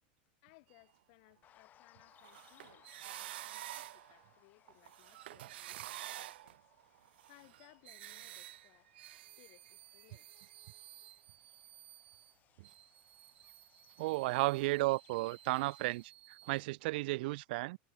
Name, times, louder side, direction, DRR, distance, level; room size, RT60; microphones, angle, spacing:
voice 1, 0.4-6.6 7.0-8.9 9.3-10.5, left 35 dB, 60° left, 6.9 m, -65 dB
sound 1, 1.4-16.1, left 11 dB, 30° left, 2.1 m, -68 dB
sound 2, 2.0-4.3 4.7-12.3 12.6-16.6, right 14 dB, 85° right, 1.1 m, -51 dB
voice 2, 14.0-17.8, right 21 dB, 65° right, 0.4 m, -34 dB
supercardioid pair, 140°, 6 cm